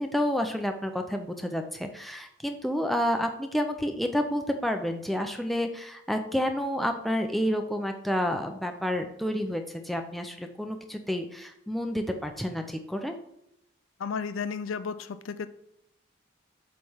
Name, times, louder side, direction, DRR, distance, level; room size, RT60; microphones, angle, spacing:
voice 1, 0.0-13.2, equal, ahead, 4 dB, 0.5 m, -29 dB
voice 2, 14.0-15.5, left 5 dB, 80° left, 12 dB, 0.4 m, -33 dB
8.0 x 3.3 x 5.6 m, 0.78 s
head